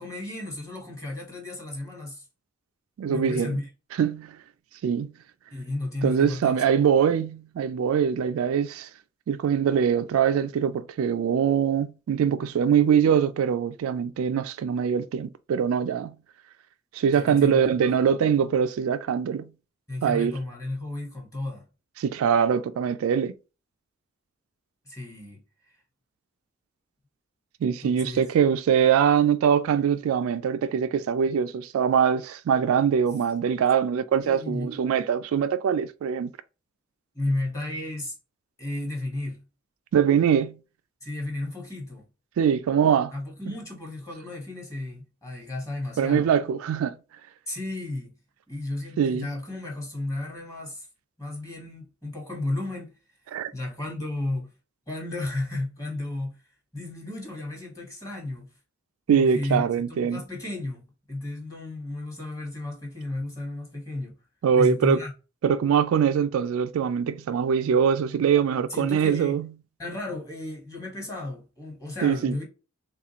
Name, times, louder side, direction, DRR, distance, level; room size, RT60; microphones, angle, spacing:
voice 1, 0.0-2.2 3.1-3.7 5.5-6.6 17.1-18.0 19.9-21.6 24.8-25.4 27.8-28.2 34.2-34.8 37.1-38.1 38.6-39.4 41.0-42.0 43.1-46.3 47.5-48.1 48.5-50.9 51.2-52.9 53.5-54.5 54.9-56.4 56.7-58.5 59.1-59.6 59.9-64.1 64.6-65.1 67.7-67.8 68.7-69.4 69.8-72.4, left 2 dB, 15° left, 1.3 m, -33 dB
voice 2, 3.0-3.6 4.0-4.4 4.8-5.2 6.0-8.9 9.3-16.2 16.9-19.5 20.0-20.4 22.0-23.3 27.6-36.3 39.9-40.6 42.4-43.1 46.0-47.0 49.0-49.3 53.3-53.5 59.1-60.2 64.4-65.0 65.4-69.5 72.0-72.4, right 7 dB, 80° right, 0.3 m, -23 dB
3.6 x 2.4 x 2.8 m
head